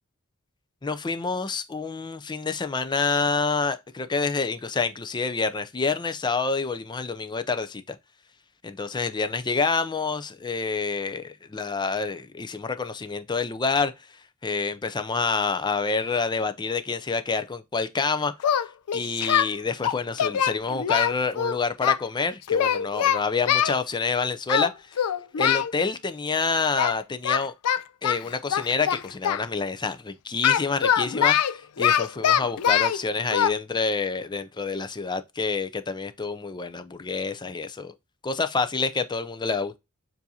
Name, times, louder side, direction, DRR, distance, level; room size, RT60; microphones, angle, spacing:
voice 1, 0.8-8.0 8.6-13.9 14.4-18.7 18.9-25.0 25.4-27.5 28.0-37.9 38.2-39.8, left 4 dB, 20° left, 0.4 m, -28 dB
Singing, 18.4-19.5 19.8-22.0 22.5-23.8 24.5-24.7 25.0-25.7 26.8-27.0 27.2-29.4 30.4-33.0 33.3-33.5, left 9 dB, 85° left, 0.4 m, -23 dB
7.0 x 2.7 x 2.7 m
head